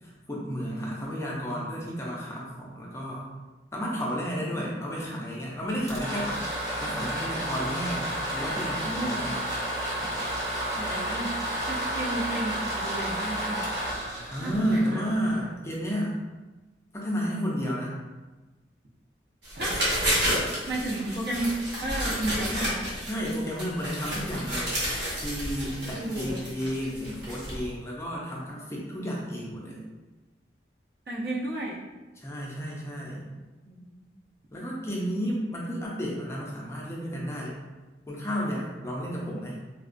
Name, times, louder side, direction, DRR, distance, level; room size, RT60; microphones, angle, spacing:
voice 1, 0.0-3.3 3.7-6.4 6.8-9.4 14.3-16.2 16.9-18.0 23.1-24.8 25.2-29.8 32.2-33.3 34.5-37.6 38.1-39.6, equal, 15° left, -4 dB, 0.4 m, -32 dB
voice 2, 4.4-4.9 6.8-7.2 8.9-9.2 10.8-11.3 11.7-13.6 14.4-15.0 19.6-19.8 20.7-21.5 21.8-22.9 25.9-26.4 31.1-31.8 33.6-34.0, right 1 dB, 60° right, -4 dB, 0.6 m, -33 dB
sound 1, 5.7-15.5, right 1 dB, 20° right, 0.7 m, -31 dB
sound 2, 19.4-27.7, equal, 75° right, 1.1 m, -31 dB
3.5 x 2.2 x 2.5 m, 1.2 s
head